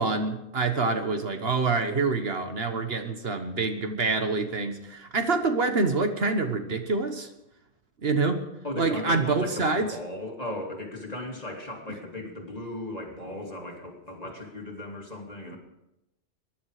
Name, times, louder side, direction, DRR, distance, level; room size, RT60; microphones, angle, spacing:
voice 1, 0.0-7.3 8.0-8.5 8.8-9.9 15.5-15.6, right 3 dB, 60° right, 7 dB, 1.5 m, -26 dB
voice 2, 8.6-15.6, left 1 dB, 35° left, 0 dB, 2.8 m, -37 dB
22.5 x 11.0 x 5.0 m, 0.87 s
omnidirectional pair, 1.1 m